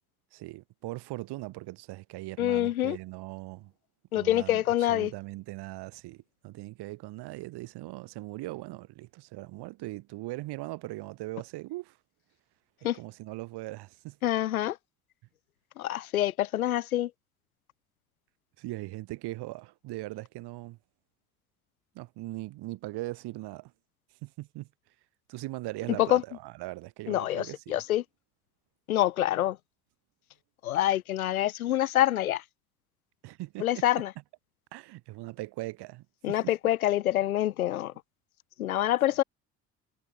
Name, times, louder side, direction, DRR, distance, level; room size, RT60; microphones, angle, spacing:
voice 1, 0.3-3.7 4.1-4.6 4.9-12.0 12.9-14.2 18.6-20.8 21.9-23.7 24.2-24.7 25.3-27.8 33.2-34.0 34.7-36.4, right 19 dB, 65° right, 6.1 m, -40 dB
voice 2, 2.4-3.0 4.1-5.1 12.8-13.0 14.2-14.8 15.8-17.1 26.0-26.2 27.1-28.0 28.9-29.6 30.6-32.4 33.6-34.1 36.2-37.9 38.6-39.2, left 13 dB, 85° left, 3.6 m, -26 dB
hypercardioid pair, 55°, 42 cm